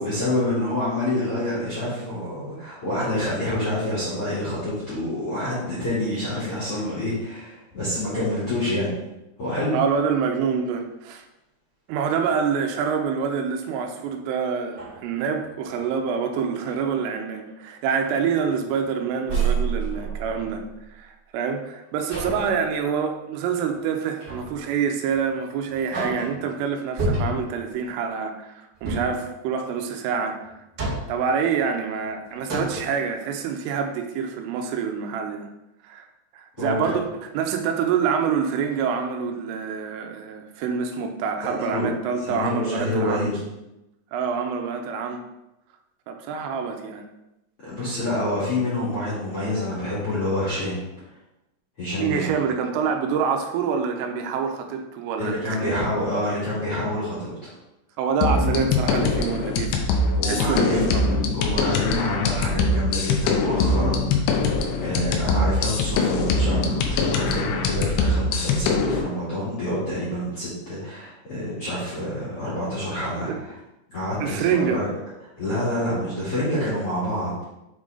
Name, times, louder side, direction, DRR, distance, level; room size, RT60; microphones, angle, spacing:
voice 1, 0.0-8.9 9.4-9.7 36.6-36.9 41.4-41.9 42.2-43.4 47.6-50.8 51.8-52.2 55.2-57.5 60.1-60.9 61.3-64.5 64.8-73.6 73.9-74.8 75.4-77.4, left 1 dB, 50° left, -9 dB, 1.8 m, -27 dB
voice 2, 9.7-11.3 11.9-20.6 20.9-30.5 31.1-35.5 35.8-36.1 36.3-43.3 44.1-45.2 46.1-47.0 52.0-55.9 58.0-59.9 60.2-61.3 73.3-73.4 74.2-74.8, right 6 dB, 85° right, 5 dB, 3.2 m, -26 dB
sound 1, 14.1-14.2 14.6-15.9 16.4-16.8 17.4-17.6 18.0-18.9 19.2-20.8 22.1-22.6 24.2-24.6 25.1-25.2 25.7-26.5 27.0-27.6 28.7-29.2 30.4-31.3 32.0-32.1 32.4-33.0, right 3 dB, 70° right, 1.0 m, -29 dB
sound 2, 58.2-69.0, left 3 dB, 85° left, 2.5 m, -23 dB
8.0 x 3.7 x 3.8 m, 0.91 s
omnidirectional pair, 5.8 m